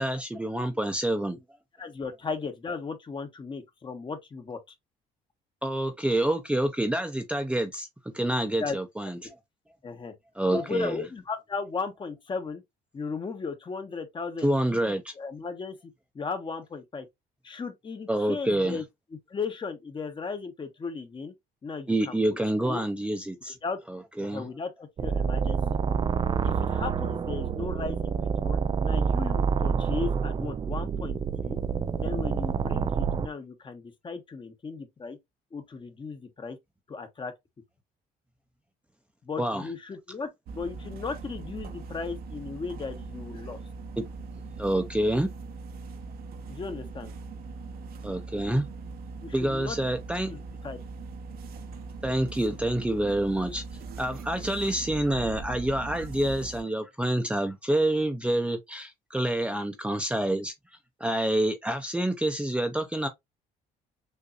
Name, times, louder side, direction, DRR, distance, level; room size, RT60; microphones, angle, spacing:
voice 1, 0.0-1.4 5.6-9.4 10.4-11.0 14.4-15.1 18.1-18.8 21.9-23.6 23.9-24.5 39.4-39.7 44.0-44.1 44.6-45.3 48.0-48.7 49.3-50.3 52.0-53.6 54.0-60.5 61.0-63.1, right 1 dB, 5° right, 0.7 m, -27 dB
voice 2, 1.8-4.7 8.6-8.8 9.8-10.1 10.5-12.6 12.9-14.6 14.9-17.1 17.4-18.8 19.3-21.3 21.6-22.2 22.6-22.8 23.5-23.8 24.2-26.0 26.4-31.6 31.9-35.2 35.5-36.6 36.9-37.3 39.2-43.6 46.5-47.1 49.2-49.8 50.3-50.4 50.6-50.8, left 4 dB, 30° left, 1.1 m, -36 dB
sound 1, 25.0-33.3, right 6 dB, 30° right, 0.3 m, -27 dB
sound 2, 40.5-56.6, right 4 dB, 65° right, 1.0 m, -40 dB
6.7 x 2.7 x 2.6 m
cardioid pair, 110°, 17 cm